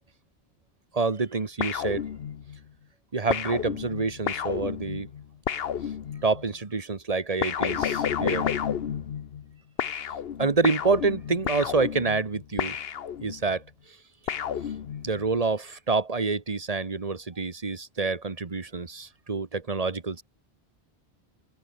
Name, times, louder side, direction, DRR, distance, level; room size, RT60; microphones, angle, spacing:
voice 1, 0.9-2.1 3.1-5.1 6.2-8.5 10.4-12.8 13.2-13.6 15.0-20.2, right 4 dB, 35° right, 1.5 m, -27 dB
sound 1, 1.6-2.6 3.3-6.5 7.4-9.5 9.8-13.5 14.3-15.3, left 8 dB, 70° left, 1.1 m, -31 dB
open air
omnidirectional pair, 1.0 m